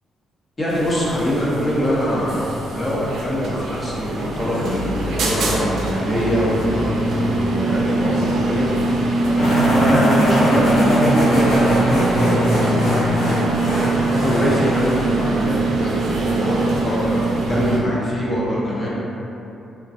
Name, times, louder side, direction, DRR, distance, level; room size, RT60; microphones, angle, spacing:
voice 1, 0.6-8.7 9.2-13.0 13.6-18.9, equal, 30° left, -6 dB, 0.7 m, -23 dB
sound 1, 0.7-17.8, right 2 dB, 70° right, 0.4 m, -22 dB
sound 2, 9.4-15.2, equal, 85° left, 1.2 m, -21 dB
3.3 x 2.2 x 2.7 m, 2.9 s
cardioid pair, 90°, 0 cm